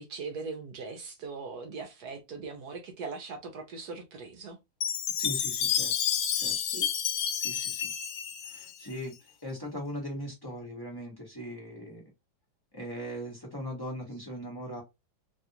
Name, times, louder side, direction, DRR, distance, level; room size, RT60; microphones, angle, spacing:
voice 1, 0.0-4.6 6.6-6.9, right 4 dB, 65° right, 1.1 m, -40 dB
Chime, 4.8-9.1, left 8 dB, 70° left, 1.1 m, -30 dB
voice 2, 5.2-5.9 6.3-6.6 7.4-7.9 8.4-12.1 12.7-14.8, equal, 15° left, 1.0 m, -39 dB
3.4 x 2.4 x 2.8 m
omnidirectional pair, 2.1 m